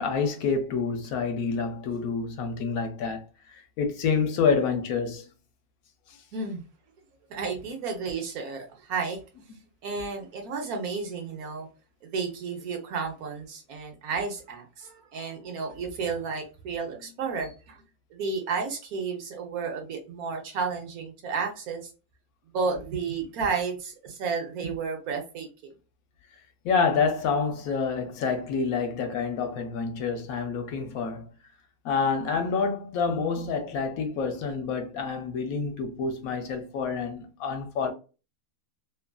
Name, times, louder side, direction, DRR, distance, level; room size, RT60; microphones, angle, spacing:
voice 1, 0.0-5.3 26.6-31.3 31.8-37.9, left 5 dB, 75° left, 1.1 m, -28 dB
voice 2, 6.3-6.6 7.3-9.2 9.8-11.7 12.0-17.8 18.1-21.9 22.5-25.7, right 5 dB, 80° right, 1.3 m, -32 dB
3.0 x 2.4 x 2.2 m
omnidirectional pair, 1.6 m